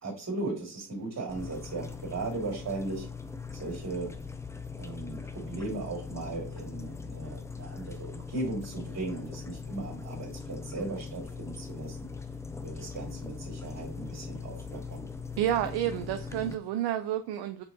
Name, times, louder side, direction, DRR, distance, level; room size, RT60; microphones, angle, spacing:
voice 1, 0.0-3.1 3.5-4.1 4.8-12.1 12.6-15.0, right 2 dB, 35° right, 2.1 m, -37 dB
sound 1, 1.3-16.5, left 5 dB, 5° left, 0.4 m, -41 dB
voice 2, 15.4-17.6, right 11 dB, 65° right, 0.5 m, -30 dB
4.4 x 3.7 x 2.6 m
hypercardioid pair, 50°, 43 cm